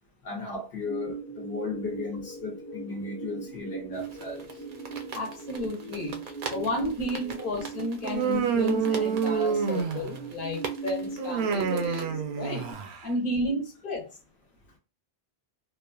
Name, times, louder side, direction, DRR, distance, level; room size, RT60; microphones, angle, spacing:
voice 1, 0.2-4.5, left 3 dB, 75° left, 1.0 m, -35 dB
sound 1, 0.9-12.7, right 4 dB, 15° left, 0.4 m, -40 dB
sound 2, 3.9-12.0, right 5 dB, 55° right, 0.4 m, -43 dB
voice 2, 5.1-6.2 6.5-12.7 13.0-14.1, left 1 dB, 55° left, 1.1 m, -32 dB
Human voice, 8.0-10.3 11.2-13.0, right 6 dB, 75° right, 0.8 m, -28 dB
3.0 x 2.3 x 2.3 m
omnidirectional pair, 1.1 m